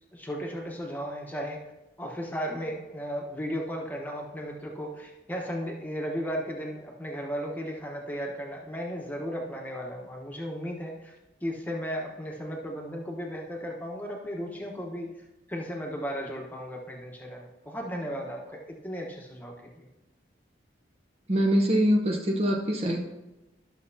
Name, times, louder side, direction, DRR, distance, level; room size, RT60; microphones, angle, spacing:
voice 1, 0.1-1.6 2.0-11.1 11.4-19.9, equal, 10° left, 0 dB, 1.1 m, -35 dB
voice 2, 21.3-23.0, equal, 35° right, 1 dB, 0.7 m, -24 dB
12.0 x 6.5 x 2.8 m, 1.0 s
head